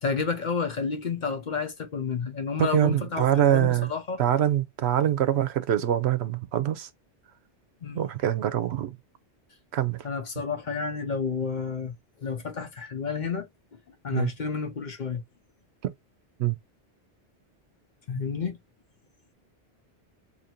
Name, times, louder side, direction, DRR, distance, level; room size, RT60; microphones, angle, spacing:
voice 1, 0.0-4.2 7.8-8.0 10.0-13.5 14.0-15.2 18.1-18.6, left 5 dB, 50° left, 0.8 m, -30 dB
voice 2, 2.6-3.9 4.2-6.9 7.9-9.0 9.7-10.1 14.1-14.3 15.8-15.9 16.4-16.5, right 11 dB, 75° right, 0.9 m, -24 dB
2.8 x 2.6 x 4.2 m
omnidirectional pair, 1.1 m